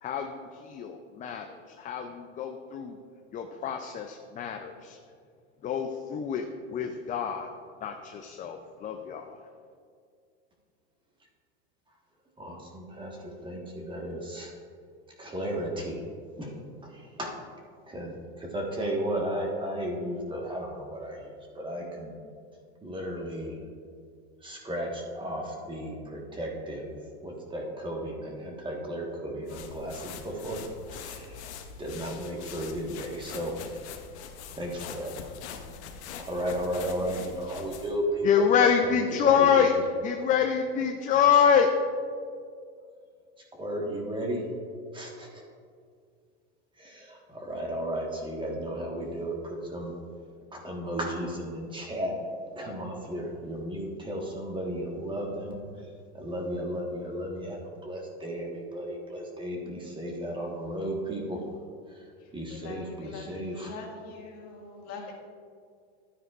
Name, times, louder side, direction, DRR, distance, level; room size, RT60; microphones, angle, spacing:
voice 1, 0.0-3.0 3.3-5.0 5.6-7.5 7.8-9.4 38.2-39.7 40.0-41.7, left 7 dB, 25° left, 4 dB, 0.5 m, -26 dB
voice 2, 12.4-14.5 15.2-16.0 16.4-17.3 17.9-22.1 22.8-23.6 24.4-30.6 30.9-33.8 34.1-35.3 35.7-38.5 38.8-39.7 41.3-41.4 43.5-44.5 44.9-45.4 46.7-49.9 50.5-52.1 52.5-61.5 61.9-63.7, right 1 dB, 15° right, 0 dB, 1.5 m, -35 dB
sound 1, 29.5-38.0, left 7 dB, 80° left, 1.0 m, -43 dB
voice 3, 62.2-65.1, left 3 dB, 45° left, -1 dB, 2.0 m, -43 dB
12.5 x 9.1 x 2.5 m, 2.2 s
supercardioid pair, 125°, 34 cm